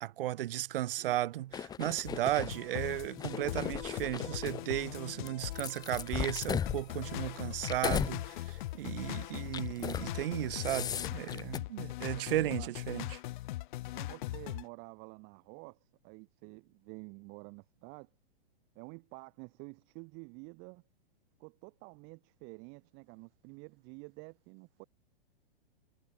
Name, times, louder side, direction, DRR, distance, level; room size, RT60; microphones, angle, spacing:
voice 1, 0.0-13.2, right 14 dB, 65° right, 0.6 m, -35 dB
sound 1, 1.5-2.5 3.1-4.6 5.3-8.2 8.6-8.8 9.5-10.1 10.4-11.6, left 8 dB, 15° left, 0.6 m, -37 dB
sound 2, 2.0-14.6, left 17 dB, 55° left, 0.5 m, -40 dB
voice 2, 5.1-5.5 11.6-13.0 13.9-18.1 18.7-20.8 21.4-24.8, right 33 dB, 35° right, 1.2 m, -50 dB
hypercardioid pair, 120°, 30 cm